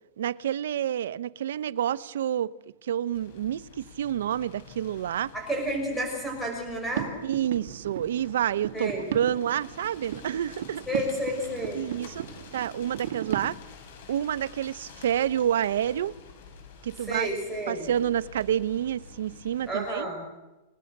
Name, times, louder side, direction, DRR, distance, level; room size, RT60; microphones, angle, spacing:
voice 1, 0.2-2.5 2.8-5.3 7.2-10.8 11.7-12.2 12.5-13.6 14.1-16.1 16.8-17.3 17.7-20.1, right 10 dB, 85° right, 0.9 m, -28 dB
sound 1, 3.1-20.0, left 4 dB, 65° left, 7.7 m, -49 dB
voice 2, 5.3-7.1 8.7-9.1 10.9-11.8 17.1-17.9 19.7-20.2, right 1 dB, ahead, 6.4 m, -31 dB
sound 2, 6.9-13.5, right 10 dB, 65° right, 2.1 m, -37 dB
29.5 x 19.0 x 6.8 m
supercardioid pair, 170°, 0 cm